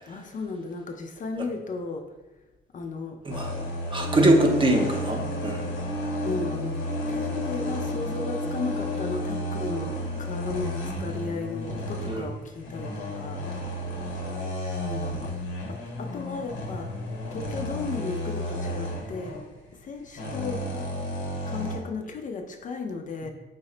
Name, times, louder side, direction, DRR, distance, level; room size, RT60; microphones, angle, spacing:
voice 1, 0.1-2.1 2.7-3.2 6.2-6.8 7.1-13.4 14.8-15.3 15.7-16.9 17.3-19.4 19.7-20.7 21.5-23.3, left 4 dB, 40° left, 4 dB, 0.4 m, -35 dB
sound 1, 3.3-21.8, left 1 dB, 85° left, 0.9 m, -32 dB
voice 2, 3.9-5.7 12.1-12.2, right 1 dB, 25° right, 2 dB, 0.6 m, -22 dB
4.0 x 2.1 x 3.8 m, 1.1 s
cardioid pair, 90°, 20 cm